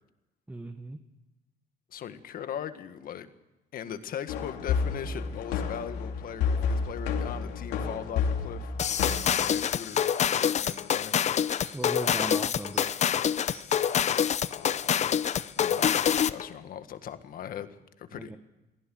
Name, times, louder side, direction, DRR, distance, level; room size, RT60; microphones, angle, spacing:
voice 1, 0.5-1.0 11.7-12.9 18.2-18.4, right 2 dB, 10° right, 6 dB, 1.4 m, -38 dB
voice 2, 1.9-3.3 3.7-8.7 9.4-11.2 14.5-15.2 15.6-18.4, left 9 dB, 60° left, 9 dB, 1.7 m, -40 dB
sound 1, 4.3-9.3, left 5 dB, 85° left, 3.1 m, -30 dB
sound 2, 8.8-16.5, left 8 dB, 40° left, 0.7 m, -26 dB
Bird, 9.1-9.4 9.8-10.0 10.6-10.8 11.6-11.9 12.7-12.9 13.5-13.7, right 8 dB, 80° right, 4.5 m, -51 dB
23.5 x 16.0 x 7.8 m, 1.0 s
cardioid pair, 110°, 17 cm